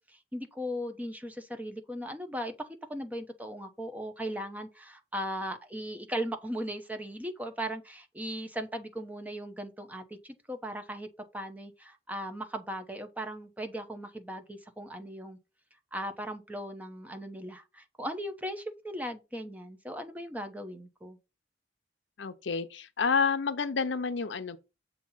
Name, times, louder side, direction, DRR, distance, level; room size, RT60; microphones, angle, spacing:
voice 1, 0.0-15.4 15.9-21.2, equal, 10° right, 0.9 m, -38 dB
voice 2, 22.2-24.6, left 5 dB, 90° left, 0.7 m, -29 dB
7.3 x 2.9 x 5.6 m
head